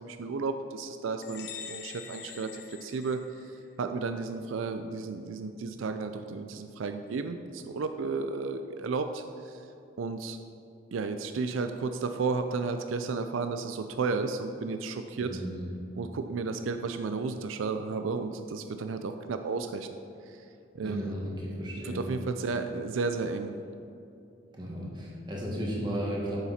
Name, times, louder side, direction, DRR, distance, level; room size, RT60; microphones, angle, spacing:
voice 1, 0.0-9.7 10.0-10.4 10.9-15.4 16.0-19.9 20.3-20.5 20.7-21.1 21.8-23.5, right 4 dB, 85° right, 8 dB, 0.4 m, -33 dB
sound 1, 1.2-3.8, left 8 dB, 50° left, 0.6 m, -44 dB
voice 2, 15.2-15.6 20.8-22.0 24.5-26.4, equal, 20° right, -4 dB, 1.7 m, -34 dB
8.9 x 7.1 x 4.2 m, 2.7 s
head